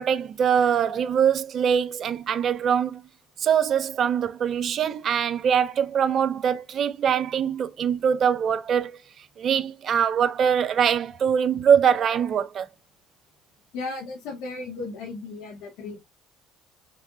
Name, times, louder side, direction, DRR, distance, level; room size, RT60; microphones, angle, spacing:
voice 1, 0.0-3.0 3.4-9.0 9.4-12.7, right 8 dB, 55° right, 0.6 m, -23 dB
voice 2, 13.7-16.0, left 3 dB, 80° left, 1.8 m, -35 dB
5.2 x 3.4 x 2.6 m
supercardioid pair, 75°, 0 cm